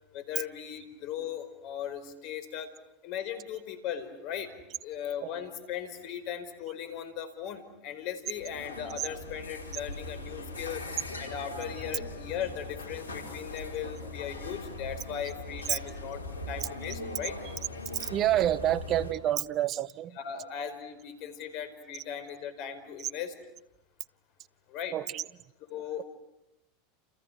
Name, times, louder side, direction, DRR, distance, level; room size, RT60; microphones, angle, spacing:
voice 1, 0.1-2.7 3.0-4.5 4.8-10.8 11.2-16.2 16.5-17.4 20.1-23.3 24.7-25.0 25.7-26.0, left 9 dB, 55° left, 4.8 m, -38 dB
sound 1, 8.4-19.1, left 2 dB, 90° left, 4.6 m, -40 dB
voice 2, 18.0-20.2 24.9-25.2, right 12 dB, 45° right, 1.1 m, -28 dB
30.0 x 29.5 x 6.5 m
hypercardioid pair, 90°, 0 cm